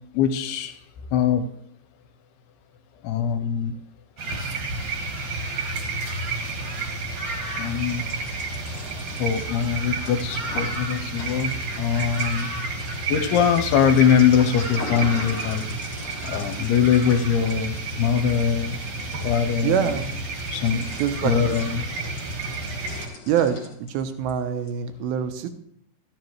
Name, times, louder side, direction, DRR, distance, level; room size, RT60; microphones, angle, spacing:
voice 1, 0.1-0.8 1.1-1.4 3.0-3.7 7.6-8.0 9.2-12.5 13.1-15.7 16.2-18.8 19.2-19.9 20.5-20.9 21.2-21.8, left 8 dB, 80° left, 8 dB, 2.7 m, -22 dB
sound 1, 4.2-23.1, right 3 dB, 55° right, 1.8 m, -30 dB
sound 2, 7.8-24.3 24.7-24.8, left 3 dB, 60° left, 1.4 m, -42 dB
voice 2, 19.6-20.2 20.9-21.5 23.3-25.5, right 8 dB, 75° right, 9 dB, 2.3 m, -25 dB
13.0 x 10.0 x 3.1 m, 0.69 s
omnidirectional pair, 4.8 m